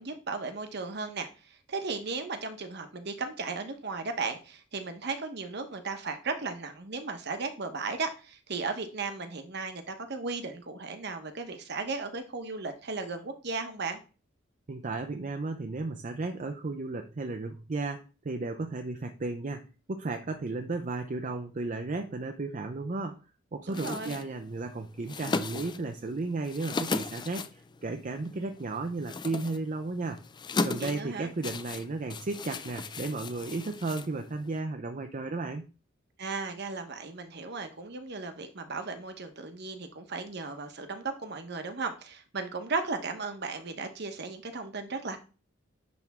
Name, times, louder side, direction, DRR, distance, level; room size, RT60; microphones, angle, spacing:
voice 1, 0.0-14.0 23.7-24.1 30.8-31.3 36.2-45.2, right 4 dB, 55° right, 7 dB, 1.0 m, -36 dB
voice 2, 14.7-23.2 23.5-30.2 30.6-35.7, right 3 dB, 40° right, 5 dB, 0.5 m, -34 dB
sound 1, 23.7-34.6, left 3 dB, 25° left, 0.4 m, -37 dB
10.5 x 3.4 x 3.6 m, 0.34 s
head